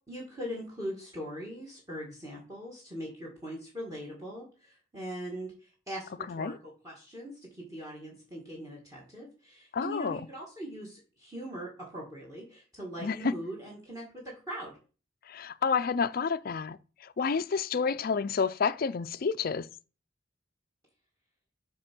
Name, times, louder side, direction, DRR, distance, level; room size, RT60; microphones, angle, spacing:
voice 1, 0.1-14.8, equal, 20° right, 1.8 m, -41 dB
voice 2, 6.3-6.6 9.7-10.2 13.0-13.3 15.3-19.7, left 5 dB, 50° left, 0.4 m, -30 dB
6.6 x 3.6 x 6.0 m
head